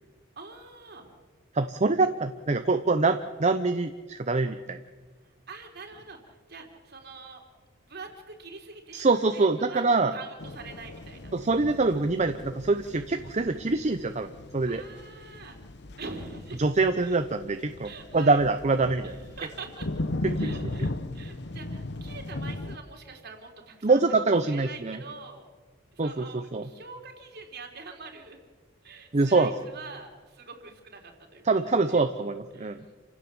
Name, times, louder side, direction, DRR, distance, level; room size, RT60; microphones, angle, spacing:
voice 1, 0.4-1.1 5.5-7.4 7.9-9.1 9.3-9.8 10.1-11.3 14.7-15.6 16.0-16.7 17.0-17.2 17.8-18.4 19.0-19.9 20.4-24.0 24.5-25.4 25.9-28.4 28.8-32.1 32.5-32.8, right 4 dB, 55° right, 3 dB, 3.6 m, -44 dB
voice 2, 1.5-4.8 8.9-10.1 11.3-14.8 16.6-19.1 20.4-20.7 23.8-25.0 26.0-26.6 29.1-29.5 31.4-32.8, right 3 dB, 35° right, 8 dB, 0.7 m, -25 dB
sound 1, 10.4-22.8, left 1 dB, 60° left, 1.1 m, -37 dB
28.5 x 16.0 x 7.2 m, 1.4 s
head